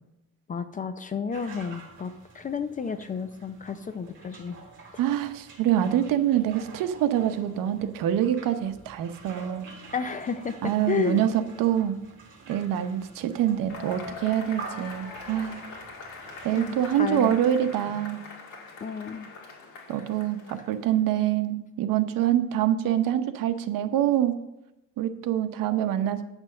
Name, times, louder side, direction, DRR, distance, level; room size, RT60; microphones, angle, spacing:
voice 1, 0.5-4.7 9.9-11.2 16.5-17.4 18.8-19.3, left 6 dB, 25° left, 11 dB, 0.4 m, -32 dB
sound 1, 1.3-17.4, right 5 dB, 35° right, 2.7 m, -48 dB
voice 2, 5.0-9.7 10.6-12.0 12.5-15.6 16.4-18.2 19.9-24.4 25.0-26.2, right 11 dB, 75° right, 9 dB, 0.9 m, -25 dB
Cheering / Applause / Crowd, 13.7-20.9, left 4 dB, 60° left, 2.4 m, -43 dB
9.0 x 6.1 x 6.6 m, 0.94 s
cardioid pair, 160°, 33 cm